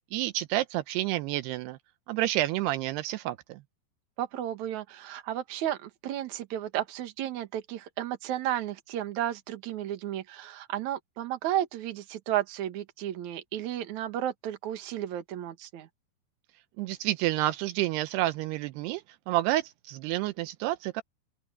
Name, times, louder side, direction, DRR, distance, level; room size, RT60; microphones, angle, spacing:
voice 1, 0.1-1.8 2.1-3.6 16.8-21.0, right 16 dB, 85° right, 2.6 m, -29 dB
voice 2, 4.2-15.9, right 12 dB, 55° right, 2.5 m, -33 dB
open air
omnidirectional pair, 4.8 m